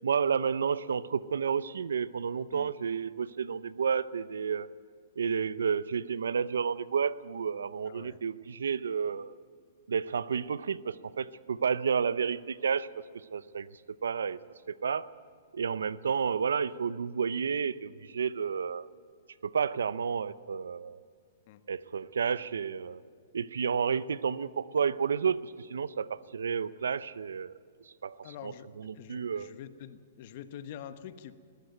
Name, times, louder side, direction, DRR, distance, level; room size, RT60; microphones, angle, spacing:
voice 1, 0.0-4.7 5.2-9.3 9.9-13.0 13.3-13.7 14.0-14.4 14.7-15.1 15.5-18.9 19.4-21.0 21.7-23.0 23.3-27.5 28.0-29.5, right 6 dB, 85° right, 17 dB, 0.7 m, -31 dB
voice 2, 7.9-8.2 21.5-21.6 23.9-24.0 28.2-28.7 28.9-31.3, left 10 dB, 50° left, 11 dB, 1.2 m, -46 dB
20.0 x 15.0 x 9.4 m, 2.2 s
hypercardioid pair, 130°, 0 cm